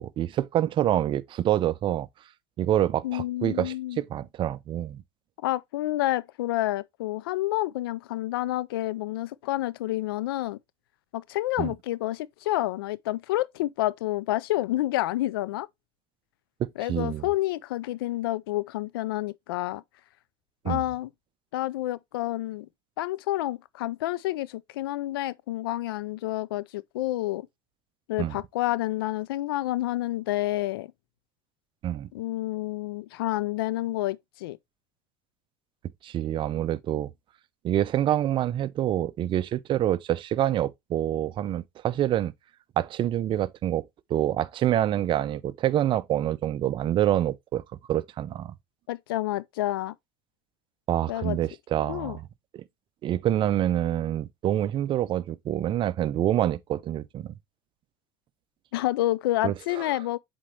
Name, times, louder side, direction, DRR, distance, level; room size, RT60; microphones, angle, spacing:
voice 1, 0.0-2.1 2.6-5.0 11.6-11.7 16.6-17.3 20.6-20.8 28.2-28.4 31.8-32.1 36.0-37.1 37.6-42.3 42.8-47.6 47.9-48.5 50.9-52.2 52.5-52.6 53.0-57.3 59.4-59.5, right 12 dB, 45° right, 0.5 m, -26 dB
voice 2, 3.0-4.0 5.4-10.6 11.1-15.7 16.8-19.8 20.6-21.1 21.5-22.7 23.0-27.5 28.1-30.9 32.1-34.6 48.9-49.9 51.1-51.4 51.9-52.2 58.7-60.2, left 16 dB, 90° left, 0.4 m, -29 dB
7.5 x 4.4 x 3.1 m
supercardioid pair, 95°, 12 cm